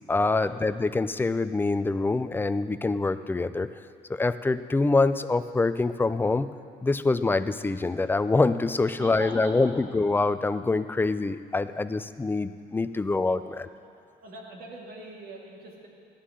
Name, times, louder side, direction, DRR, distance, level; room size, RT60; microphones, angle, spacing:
voice 1, 0.1-3.7 4.1-6.5 6.8-13.7, left 3 dB, 10° left, 12 dB, 0.4 m, -25 dB
voice 2, 8.8-9.7 13.1-13.6 14.2-15.9, right 3 dB, 60° right, -1 dB, 2.7 m, -42 dB
17.0 x 11.5 x 3.8 m, 2.4 s
cardioid pair, 110°, 17 cm